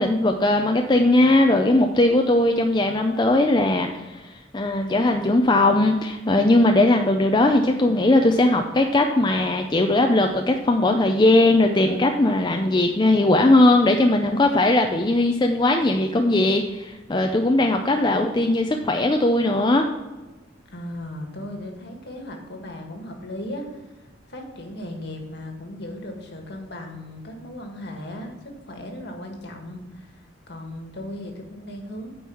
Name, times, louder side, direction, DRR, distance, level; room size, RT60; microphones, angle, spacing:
voice 1, 0.0-19.9, left 2 dB, 25° left, 4 dB, 0.5 m, -19 dB
voice 2, 20.7-23.9 24.3-32.1, left 1 dB, 60° left, 3 dB, 1.7 m, -37 dB
9.1 x 4.7 x 7.1 m, 1.2 s
head